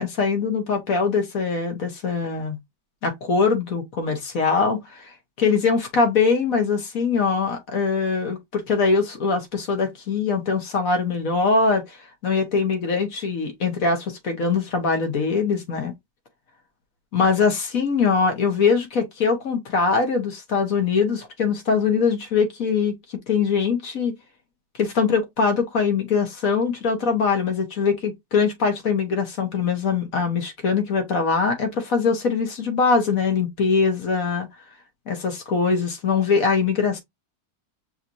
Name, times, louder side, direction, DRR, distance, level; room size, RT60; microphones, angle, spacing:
voice 1, 0.0-2.6 3.0-5.1 5.4-12.0 12.2-15.9 17.1-22.9 23.3-24.1 24.8-34.5 35.1-37.0, left 5 dB, 55° left, 1.7 m, -22 dB
5.8 x 3.0 x 2.6 m
omnidirectional pair, 1.8 m